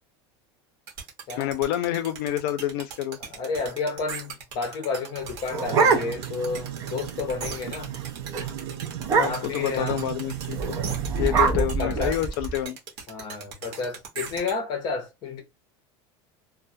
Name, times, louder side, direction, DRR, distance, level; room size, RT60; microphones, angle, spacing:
sound 1, 0.9-14.5, right 5 dB, 50° right, 1.0 m, -39 dB
voice 1, 1.4-3.2 9.1-10.8 11.2-12.8, left 12 dB, 65° left, 0.5 m, -28 dB
voice 2, 3.2-7.9 9.2-10.0 11.2-12.2 13.1-15.4, left 4 dB, 30° left, 0.8 m, -31 dB
sound 2, 5.2-6.4 6.8-6.9 7.2-7.5 7.8-8.0 8.3-8.5 9.0-9.6 10.5-12.6, right 5 dB, 25° right, 0.5 m, -24 dB
sound 3, 5.6-11.3, right 11 dB, 70° right, 0.6 m, -35 dB
2.3 x 2.1 x 2.6 m
cardioid pair, 175°, 14 cm